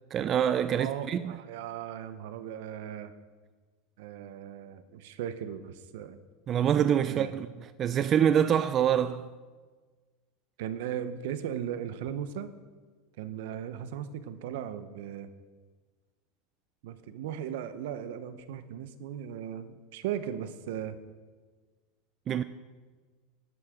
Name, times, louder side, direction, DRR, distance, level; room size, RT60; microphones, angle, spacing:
voice 1, 0.1-1.4 6.5-7.5 7.8-9.3 22.3-22.4, right 9 dB, 35° right, 0.4 m, -25 dB
voice 2, 0.7-3.1 4.0-6.2 7.0-7.3 10.6-12.5 13.2-15.3 16.8-21.0, right 9 dB, 70° right, 0.8 m, -37 dB
11.5 x 11.0 x 3.7 m
supercardioid pair, 125°, 0 cm